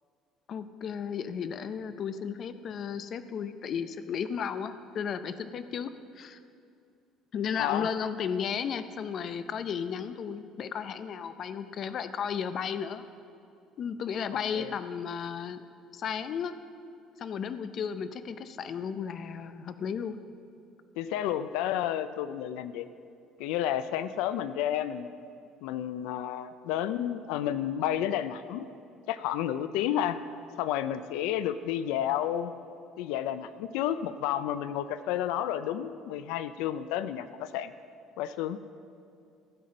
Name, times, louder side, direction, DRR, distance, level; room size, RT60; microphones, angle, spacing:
voice 1, 0.5-5.9 6.2-6.4 7.3-13.0 13.8-15.6 15.9-16.5 17.2-20.2, left 7 dB, 40° left, 11 dB, 0.5 m, -34 dB
voice 2, 7.6-7.9 14.5-14.7 21.0-22.9 23.4-25.1 25.6-28.7 29.1-30.2 30.6-32.5 33.0-37.7 38.2-38.6, left 11 dB, 90° left, 13 dB, 0.4 m, -31 dB
16.0 x 7.6 x 5.3 m, 2.5 s
cardioid pair, 150°, 0 cm